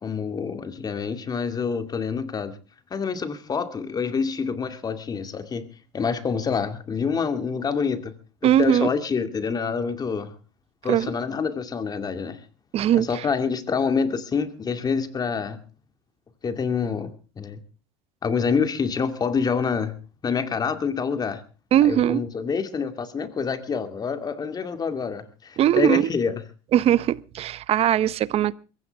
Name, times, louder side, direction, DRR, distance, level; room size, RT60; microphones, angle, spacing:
voice 1, 0.0-2.6 2.9-5.6 5.9-8.1 8.4-10.3 10.8-12.4 12.9-15.6 16.4-17.6 18.2-19.9 20.2-21.4 21.8-26.3, left 5 dB, 25° left, 2.3 m, -27 dB
voice 2, 8.4-8.9 10.9-11.1 12.7-13.3 21.7-22.2 25.6-26.1 26.7-28.6, right 11 dB, 40° right, 0.8 m, -20 dB
22.5 x 16.0 x 3.4 m
supercardioid pair, 110°, 15 cm